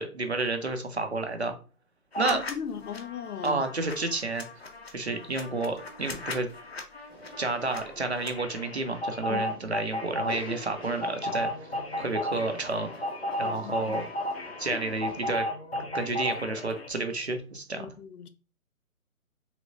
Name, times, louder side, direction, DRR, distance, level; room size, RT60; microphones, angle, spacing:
voice 1, 0.0-1.5 2.2-2.4 3.4-4.5 4.9-6.5 7.4-11.7 12.0-12.9 13.4-14.1 14.6-15.5 15.9-17.9, right 3 dB, 50° right, 0.5 m, -30 dB
sound 1, 2.1-2.5 2.8-16.9, left 1 dB, 45° left, 0.5 m, -35 dB
voice 2, 2.2-3.7 9.3-9.6 13.4-14.0 14.7-15.0 17.8-18.3, left 7 dB, 85° left, 0.7 m, -38 dB
sound 2, 7.1-15.3, left 1 dB, 15° left, 0.9 m, -47 dB
3.3 x 3.0 x 2.5 m
hypercardioid pair, 180°, 44 cm